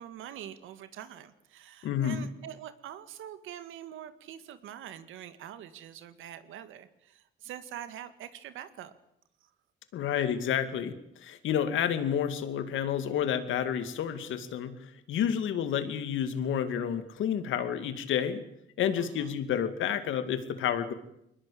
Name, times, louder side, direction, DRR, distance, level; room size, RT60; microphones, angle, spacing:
voice 1, 0.0-8.9 9.4-9.5 19.0-19.4, right 10 dB, 85° right, 11 dB, 2.1 m, -45 dB
voice 2, 1.8-2.3 9.9-14.7 15.1-18.4 18.8-20.9, left 9 dB, 80° left, 10 dB, 2.3 m, -30 dB
22.5 x 20.0 x 8.7 m, 0.80 s
cardioid pair, 90°, 20 cm